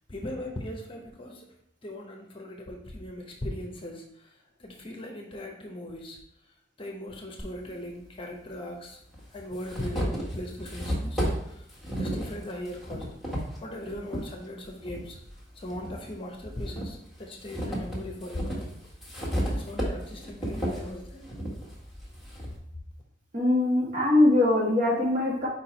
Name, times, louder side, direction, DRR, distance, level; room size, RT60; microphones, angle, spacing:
voice 1, 0.1-1.5 1.8-4.3 4.6-6.2 6.8-9.0 9.3-11.6 12.0-13.3 13.6-15.2 15.6-18.6 19.4-21.3, left 1 dB, 30° left, 1 dB, 0.9 m, -39 dB
sound 1, 7.4-7.5 8.6-8.7 9.1-14.3 14.8-16.0 16.4-22.6, equal, ahead, 1.6 m, -33 dB
voice 2, 23.3-25.5, left 2 dB, 45° right, -3 dB, 1.8 m, -22 dB
4.9 x 4.6 x 4.5 m, 0.72 s
head